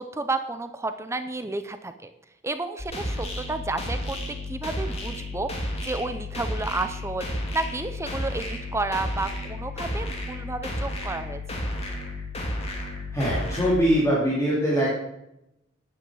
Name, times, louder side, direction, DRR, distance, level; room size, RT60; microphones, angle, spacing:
voice 1, 0.0-2.1 2.4-11.4, right 3 dB, 15° right, 9 dB, 0.6 m, -31 dB
sound 1, 2.8-13.8, left 1 dB, 30° left, 2.7 m, -32 dB
voice 2, 13.1-14.9, equal, 15° left, -6 dB, 2.8 m, -22 dB
9.9 x 9.8 x 6.3 m, 0.85 s
head